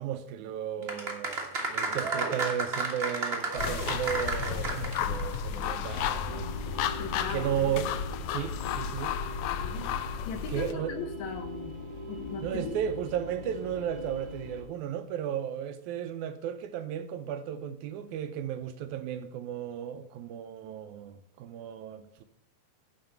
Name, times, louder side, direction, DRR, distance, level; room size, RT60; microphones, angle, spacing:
voice 1, 0.0-6.7 7.3-7.9 8.3-9.1 10.5-11.0 12.4-22.2, right 9 dB, 80° right, 1.8 m, -34 dB
sound 1, 0.8-5.3 5.6-5.7, right 3 dB, 55° right, 0.6 m, -32 dB
sound 2, 3.6-10.7, left 7 dB, 90° left, 1.5 m, -33 dB
sound 3, 6.2-14.6, left 1 dB, 20° left, 0.7 m, -41 dB
voice 2, 7.0-7.7 9.6-9.9 10.2-11.8 12.1-12.7, left 6 dB, 70° left, 2.0 m, -39 dB
10.5 x 4.2 x 7.8 m
omnidirectional pair, 3.8 m